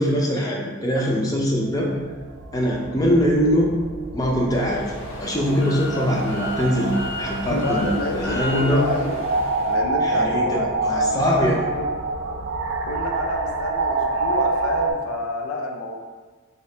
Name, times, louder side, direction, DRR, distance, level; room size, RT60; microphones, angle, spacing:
voice 1, 0.0-1.9 2.5-3.7 4.1-4.9 5.2-8.8 10.0-11.6, equal, 15° left, -3 dB, 0.4 m, -22 dB
sound 1, 1.7-14.9, right 3 dB, 60° right, 0.3 m, -27 dB
sound 2, 4.5-9.8, left 1 dB, 60° left, 0.8 m, -34 dB
voice 2, 7.5-9.2 9.6-11.9 12.8-16.0, left 2 dB, 90° left, 2 dB, 0.5 m, -29 dB
3.4 x 2.8 x 3.2 m, 1.4 s
head